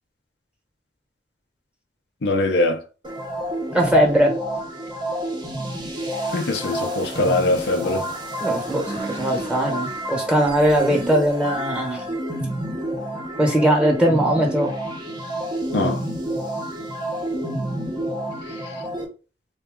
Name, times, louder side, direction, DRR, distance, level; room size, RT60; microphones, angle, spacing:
voice 1, 2.2-2.8 6.3-8.1 15.7-16.0, left 2 dB, 70° left, 0.6 m, -22 dB
sound 1, 3.0-19.0, right 1 dB, 25° right, 0.8 m, -29 dB
voice 2, 3.7-4.4 8.4-12.1 13.4-14.7, equal, 5° right, 1.1 m, -20 dB
3.9 x 2.3 x 3.6 m
head